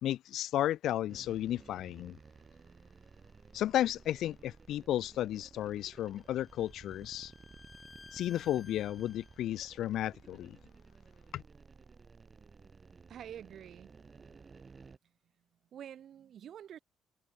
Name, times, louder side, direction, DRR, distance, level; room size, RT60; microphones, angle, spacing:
voice 1, 0.0-2.2 3.5-7.3 8.1-10.6 11.3-11.4, left 12 dB, 80° left, 0.6 m, -33 dB
sound 1, 1.1-15.0, right 5 dB, 35° right, 2.7 m, -56 dB
Bowed string instrument, 5.8-9.6, left 3 dB, 25° left, 5.2 m, -57 dB
voice 2, 13.1-13.9 15.7-16.8, right 9 dB, 65° right, 1.1 m, -47 dB
cardioid pair, 90°, 0 cm